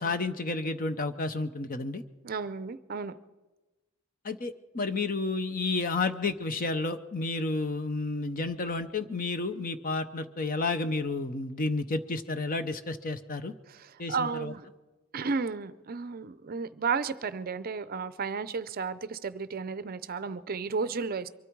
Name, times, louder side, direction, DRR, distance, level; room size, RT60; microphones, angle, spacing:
voice 1, 0.0-2.0 4.2-13.5 14.0-14.5, left 3 dB, 40° left, 10 dB, 0.8 m, -31 dB
voice 2, 2.2-3.1 13.7-14.7 15.1-21.3, right 5 dB, 45° right, 15 dB, 0.5 m, -33 dB
23.5 x 13.0 x 4.6 m, 1.2 s
head